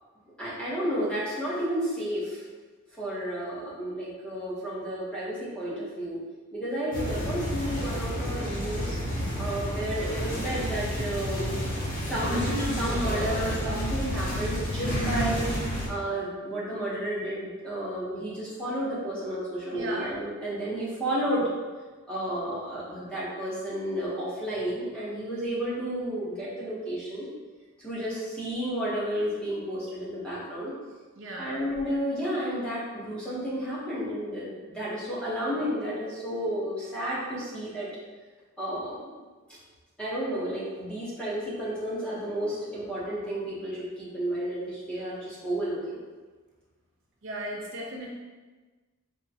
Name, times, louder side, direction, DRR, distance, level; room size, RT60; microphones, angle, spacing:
voice 1, 0.4-2.4 3.0-6.2 6.5-9.0 9.3-11.6 12.0-15.5 15.9-21.5 22.1-27.3 27.8-30.7 31.4-37.9 38.6-39.1 40.0-46.0, equal, 5° left, -9 dB, 0.8 m, -32 dB
sound 1, 6.9-15.9, equal, 45° left, 0.7 m, -30 dB
voice 2, 19.7-20.1 31.2-31.6 47.2-48.1, right 1 dB, 60° right, -2 dB, 0.5 m, -36 dB
3.6 x 2.1 x 2.7 m, 1.3 s
head